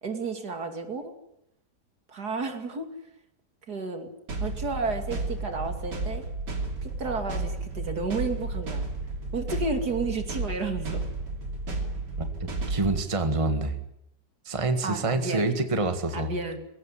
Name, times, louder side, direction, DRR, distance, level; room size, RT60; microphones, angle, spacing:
voice 1, 0.0-1.1 2.1-2.9 3.7-4.1 4.4-6.2 6.8-8.9 9.3-11.0 14.8-15.5 16.1-16.6, right 3 dB, 65° right, 6 dB, 3.2 m, -32 dB
sound 1, 4.3-13.0, right 2 dB, 85° right, 3.6 m, -32 dB
voice 2, 12.2-13.8 14.5-16.3, right 2 dB, 20° right, 8 dB, 1.8 m, -27 dB
22.0 x 17.5 x 9.9 m, 0.80 s
omnidirectional pair, 1.8 m